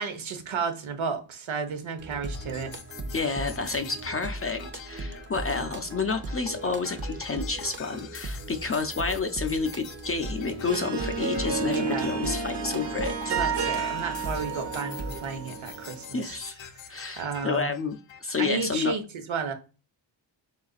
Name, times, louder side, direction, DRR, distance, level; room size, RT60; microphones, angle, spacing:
voice 1, 0.0-2.7 11.7-12.1 13.3-16.3 17.1-17.7 18.4-19.5, right 5 dB, 85° right, 1.0 m, -32 dB
sound 1, 2.0-15.4, right 2 dB, 25° right, 0.5 m, -38 dB
sound 2, 2.3-18.3, left 8 dB, 70° left, 0.6 m, -46 dB
voice 2, 3.1-13.3 16.1-16.6 16.9-18.9, left 4 dB, 30° left, 0.4 m, -30 dB
Harp, 10.3-16.1, right 4 dB, 60° right, 1.0 m, -31 dB
4.1 x 3.9 x 2.3 m
wide cardioid pair, 155°, 46 cm